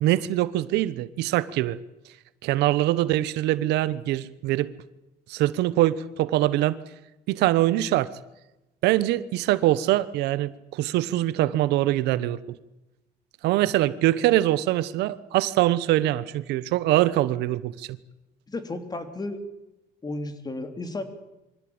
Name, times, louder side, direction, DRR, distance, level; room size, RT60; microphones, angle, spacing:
voice 1, 0.0-1.8 2.4-4.7 5.3-6.8 7.3-8.1 8.8-12.6 13.4-18.0, right 15 dB, 90° right, 17 dB, 1.1 m, -23 dB
voice 2, 18.5-19.4 20.0-21.0, left 2 dB, 25° left, 9 dB, 3.2 m, -33 dB
24.0 x 16.5 x 8.8 m, 0.98 s
cardioid pair, 110°, 17 cm